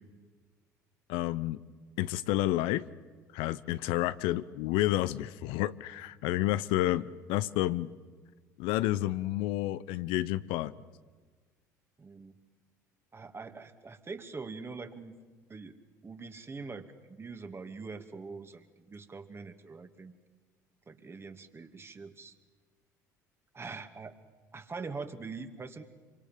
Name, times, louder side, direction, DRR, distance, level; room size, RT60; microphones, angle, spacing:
voice 1, 1.1-1.6 2.0-2.9 3.3-7.9 8.6-10.7, left 15 dB, 65° left, 15 dB, 0.8 m, -30 dB
voice 2, 12.0-12.3 13.1-15.1 15.5-15.8 16.0-20.1 20.9-22.3 23.5-24.1 24.5-25.8, right 4 dB, 25° right, 8 dB, 2.6 m, -43 dB
27.0 x 24.5 x 7.7 m, 1.4 s
hypercardioid pair, 60°, 9 cm